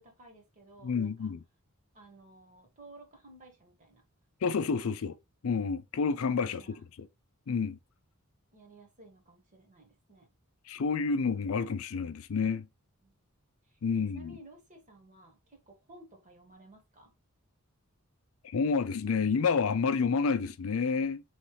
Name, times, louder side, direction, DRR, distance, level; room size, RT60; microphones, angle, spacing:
voice 1, 0.0-1.3 1.9-4.0 4.6-4.9 6.2-6.8 8.5-10.3 13.0-13.1 13.6-13.8 14.1-17.1, right 2 dB, 35° right, 1.3 m, -55 dB
voice 2, 0.8-1.4 4.4-5.2 5.4-6.6 7.0-7.1 7.5-7.8 10.7-12.7 13.8-14.3 18.5-21.2, left 5 dB, 70° left, 0.4 m, -29 dB
4.1 x 3.2 x 3.2 m
head